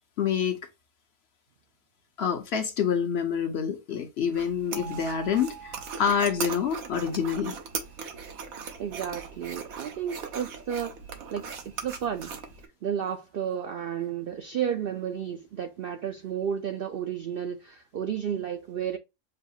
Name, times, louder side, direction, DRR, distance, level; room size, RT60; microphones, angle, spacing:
voice 1, 0.2-0.6 2.2-7.6, left 7 dB, 60° left, 0.8 m, -27 dB
sound 1, 4.3-12.7, right 5 dB, 90° right, 1.3 m, -39 dB
sound 2, 4.7-7.5, right 9 dB, 25° left, 0.6 m, -46 dB
voice 2, 8.8-10.9 11.3-11.5 11.8-12.3 12.8-19.0, right 8 dB, 70° right, 0.5 m, -32 dB
6.3 x 2.3 x 2.6 m
omnidirectional pair, 1.4 m